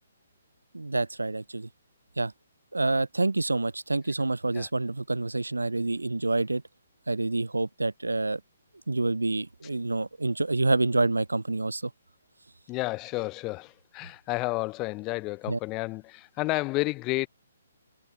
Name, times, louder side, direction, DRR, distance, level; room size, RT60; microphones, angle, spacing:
voice 1, 0.7-1.7 2.2-2.3 2.7-6.6 7.1-8.4 8.9-11.9 15.5-15.6, right 2 dB, 85° right, 0.3 m, -27 dB
voice 2, 12.7-17.3, left 23 dB, 25° left, 0.3 m, -31 dB
figure-of-eight pair, 135°, 0 cm